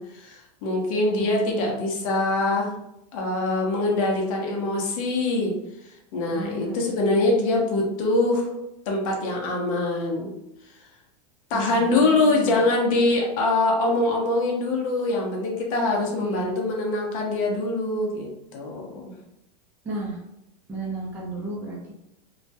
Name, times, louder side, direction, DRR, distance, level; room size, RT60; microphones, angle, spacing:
voice 1, 0.0-2.7 3.1-5.5 6.1-8.5 8.9-10.3 11.5-19.1, left 2 dB, 55° left, 0 dB, 0.7 m, -24 dB
voice 2, 1.1-1.8 6.3-6.9 11.5-12.6 16.2-16.5 19.8-20.2 20.7-21.9, right 2 dB, 10° right, -5 dB, 0.5 m, -34 dB
2.3 x 2.1 x 2.7 m, 0.84 s
supercardioid pair, 150°, 21 cm